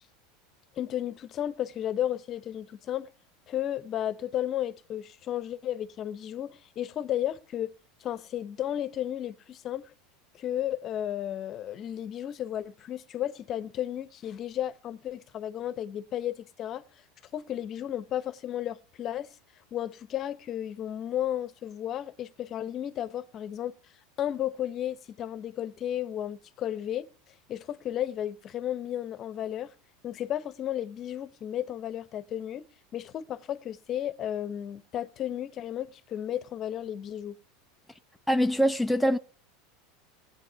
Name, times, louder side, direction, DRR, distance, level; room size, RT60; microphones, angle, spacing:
voice 1, 0.8-3.1 3.5-7.7 8.0-9.9 10.3-16.8 17.3-19.3 19.7-23.7 24.2-27.1 27.5-29.7 30.0-37.3, left 11 dB, 40° left, 0.9 m, -33 dB
voice 2, 38.3-39.2, equal, ahead, 0.6 m, -23 dB
17.0 x 8.8 x 6.9 m
supercardioid pair, 120°, 0 cm